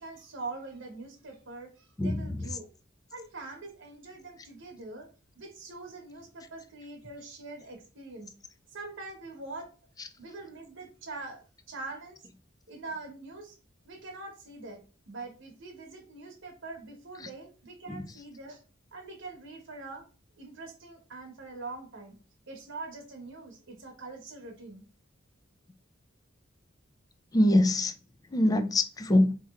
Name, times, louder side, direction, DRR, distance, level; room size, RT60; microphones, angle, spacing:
voice 1, 0.0-2.6 3.1-5.1 5.3-8.3 8.7-9.7 10.2-12.2 12.7-13.6 13.9-18.6 18.9-20.0 20.4-22.1 22.5-24.8, right 3 dB, 65° right, 1.0 m, -43 dB
voice 2, 2.0-2.5 17.2-17.3 17.9-18.1 27.3-27.9 28.3-29.3, left 1 dB, 20° left, 0.4 m, -24 dB
4.3 x 2.9 x 2.4 m
head